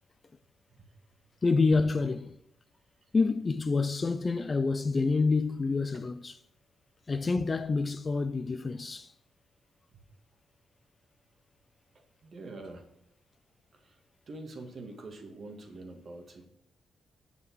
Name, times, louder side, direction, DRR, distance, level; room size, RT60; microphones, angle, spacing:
voice 1, 1.4-2.4 3.1-6.4 7.1-9.1, left 4 dB, 25° left, 0.5 m, -27 dB
voice 2, 12.2-12.8 13.7-14.0 14.3-16.5, right 2 dB, 40° right, 2.0 m, -45 dB
9.6 x 7.4 x 6.2 m
wide cardioid pair, 170°, 0 cm